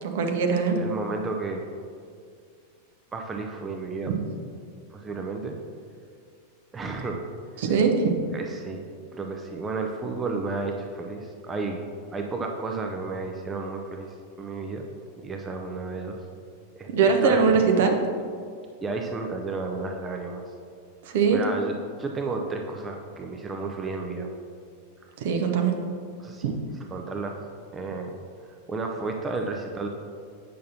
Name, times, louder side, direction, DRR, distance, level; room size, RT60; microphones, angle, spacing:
voice 1, 0.0-0.8 4.1-4.2 7.6-8.1 16.9-17.9 21.1-21.4 25.2-25.7 26.4-26.5, right 5 dB, 55° right, 4 dB, 0.7 m, -21 dB
voice 2, 0.7-1.7 3.1-4.1 4.9-5.6 6.7-7.2 7.5-7.7 8.3-8.9 9.1-11.8 12.1-14.9 15.2-16.2 16.8-17.4 18.8-20.5 21.1-24.3 26.2-26.6 26.9-27.4 27.7-28.2 28.5-29.9, right 3 dB, 20° right, 3 dB, 0.5 m, -32 dB
8.4 x 5.9 x 2.8 m, 2.2 s
figure-of-eight pair, 90°, 0 cm